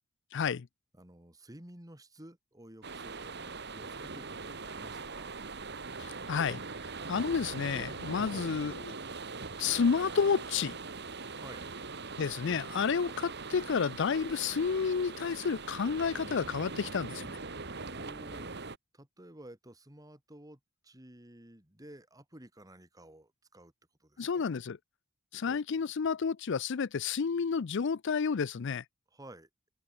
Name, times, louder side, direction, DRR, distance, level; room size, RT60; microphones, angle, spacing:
voice 1, 0.3-0.7 6.0-6.6 7.1-8.9 9.6-10.8 12.2-17.3 24.2-24.8 25.3-28.8, left 6 dB, 60° left, 0.5 m, -30 dB
voice 2, 0.9-5.3 8.0-8.5 11.3-11.7 17.9-18.7 18.9-23.7 24.0-24.4 25.5-25.8 29.1-29.5, right 1 dB, 15° right, 2.6 m, -53 dB
sound 1, 2.8-18.8, right 4 dB, 55° right, 2.3 m, -41 dB
head